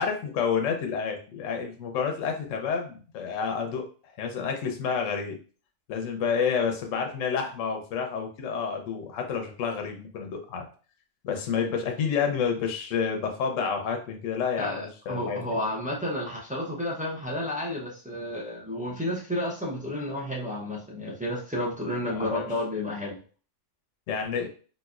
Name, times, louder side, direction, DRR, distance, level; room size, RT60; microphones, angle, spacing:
voice 1, 0.0-3.9 4.2-5.4 5.9-10.7 11.2-15.4 22.1-22.4 24.1-24.5, left 6 dB, 70° left, 3 dB, 1.0 m, -29 dB
voice 2, 14.6-23.1, left 1 dB, 15° right, -4 dB, 0.3 m, -31 dB
4.1 x 2.5 x 2.4 m, 0.39 s
omnidirectional pair, 1.4 m